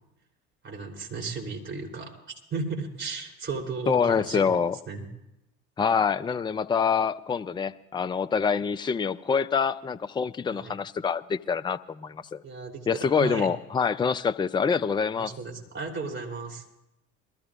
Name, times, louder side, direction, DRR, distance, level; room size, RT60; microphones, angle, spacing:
voice 1, 0.6-2.2 2.5-4.5 4.9-5.1 10.5-10.7 12.4-13.5 15.2-16.6, right 4 dB, 30° right, 0 dB, 3.5 m, -35 dB
voice 2, 3.9-4.8 5.8-12.4 12.9-15.3, left 6 dB, 15° left, 11 dB, 0.4 m, -26 dB
23.0 x 14.0 x 2.5 m, 0.85 s
hypercardioid pair, 55°, 38 cm